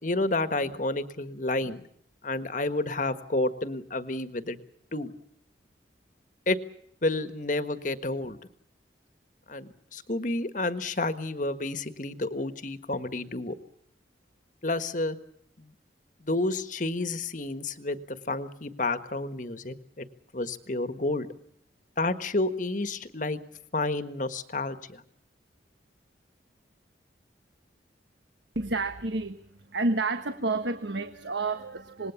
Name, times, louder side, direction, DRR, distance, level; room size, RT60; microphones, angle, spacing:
voice 1, 0.0-1.9 2.2-4.6 4.9-5.1 6.5-6.6 7.0-8.4 9.5-13.6 14.6-15.2 15.6-15.7 16.2-20.1 20.3-21.3 22.0-23.4 23.7-25.0, left 2 dB, 45° left, 11 dB, 1.5 m, -30 dB
voice 2, 28.5-32.1, right 3 dB, 75° right, 9 dB, 1.3 m, -30 dB
26.5 x 20.5 x 7.2 m, 0.69 s
head